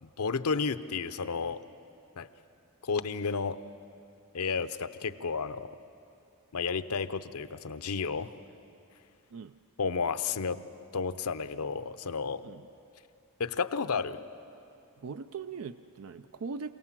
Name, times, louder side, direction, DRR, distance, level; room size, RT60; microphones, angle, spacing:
voice 1, 0.0-1.6 2.2-2.3 2.8-3.6 4.3-5.7 6.5-8.3 9.8-10.6 10.9-12.4 13.4-14.2, left 5 dB, 90° left, 12 dB, 0.7 m, -32 dB
voice 2, 15.0-16.8, right 5 dB, 65° right, 11 dB, 0.4 m, -40 dB
26.5 x 18.0 x 7.5 m, 2.6 s
head